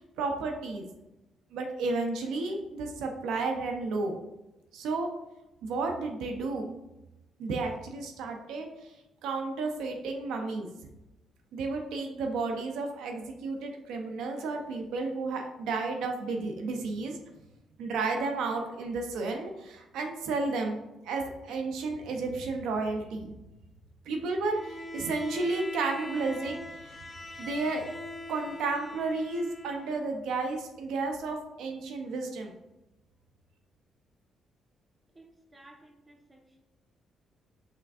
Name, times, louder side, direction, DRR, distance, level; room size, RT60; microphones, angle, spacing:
voice 1, 0.2-0.9 1.5-4.2 4.7-5.1 5.6-6.8 7.4-8.7 9.2-10.7 11.5-17.2 17.8-20.8 21.0-23.3 24.1-27.0 27.4-27.8 28.3-32.5, right 3 dB, 85° right, 3 dB, 0.6 m, -32 dB
Bowed string instrument, 24.5-30.1, left 1 dB, 25° left, 0.4 m, -42 dB
voice 2, 35.5-36.6, right 2 dB, 20° right, 1 dB, 0.9 m, -55 dB
5.7 x 3.4 x 2.4 m, 0.97 s
cardioid pair, 90°, 0 cm